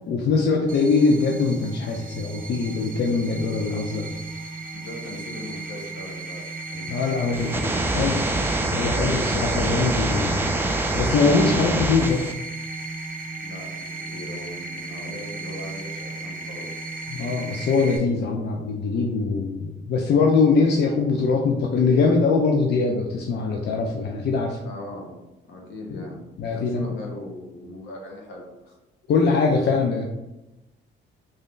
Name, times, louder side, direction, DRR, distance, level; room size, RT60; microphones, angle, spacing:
voice 1, 0.1-4.1 6.9-8.2 8.7-10.5 10.9-12.2 17.1-24.6 26.4-26.9 29.1-30.0, left 4 dB, 55° left, 1 dB, 0.5 m, -22 dB
sound 1, 0.7-18.0, right 3 dB, 40° right, 0.8 m, -35 dB
voice 2, 4.7-6.4 6.7-8.5 13.4-16.9 24.6-25.1 25.5-26.2 26.5-28.8, left 1 dB, 80° left, -1 dB, 1.0 m, -39 dB
sound 2, 7.3-12.3, right 2 dB, 10° right, 0.4 m, -25 dB
3.1 x 2.6 x 3.7 m, 0.98 s
cardioid pair, 90°, 20 cm